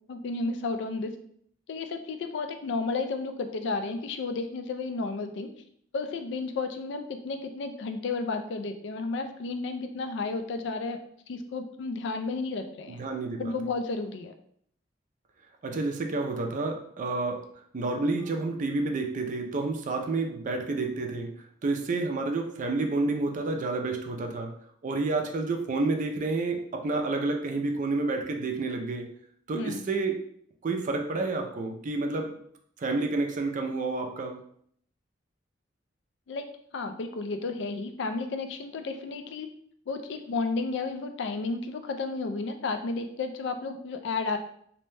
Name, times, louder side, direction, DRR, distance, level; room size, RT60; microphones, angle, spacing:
voice 1, 0.1-1.1 1.7-5.5 5.9-11.0 11.3-13.0 13.4-14.3 29.5-29.8 36.3-36.5 36.7-39.5 39.9-44.4, left 3 dB, 65° left, 7 dB, 0.3 m, -32 dB
voice 2, 12.9-13.5 15.6-17.4 17.7-21.3 21.6-24.5 24.8-29.1 29.5-30.2 30.6-32.3 32.8-34.4, right 3 dB, 45° right, 3 dB, 0.4 m, -29 dB
2.6 x 2.1 x 3.2 m, 0.65 s
head